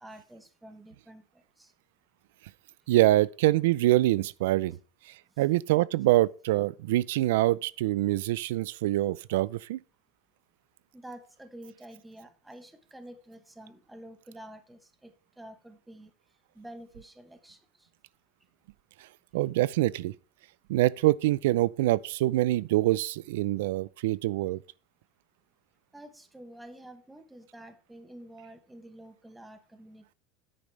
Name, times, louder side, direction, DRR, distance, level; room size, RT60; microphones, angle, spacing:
voice 1, 0.0-1.7 10.9-16.1 16.5-17.9 25.9-30.1, right 1 dB, 5° right, 1.1 m, -49 dB
voice 2, 2.9-4.8 5.4-9.8 19.3-20.1 20.7-24.6, right 16 dB, 90° right, 0.5 m, -25 dB
10.5 x 8.8 x 3.3 m
cardioid pair, 175°, 0 cm